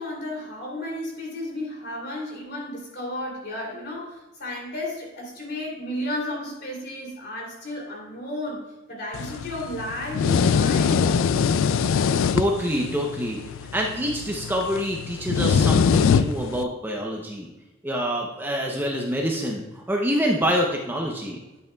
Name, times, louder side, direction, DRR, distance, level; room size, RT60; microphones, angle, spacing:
voice 1, 0.0-8.6 8.9-11.4, left 1 dB, 55° left, -2 dB, 2.9 m, -33 dB
sound 1, 9.1-16.6, left 6 dB, 80° left, 0.3 m, -23 dB
voice 2, 12.3-17.5 17.8-21.4, equal, 10° right, 0 dB, 0.7 m, -26 dB
10.5 x 8.3 x 2.3 m, 1.1 s
head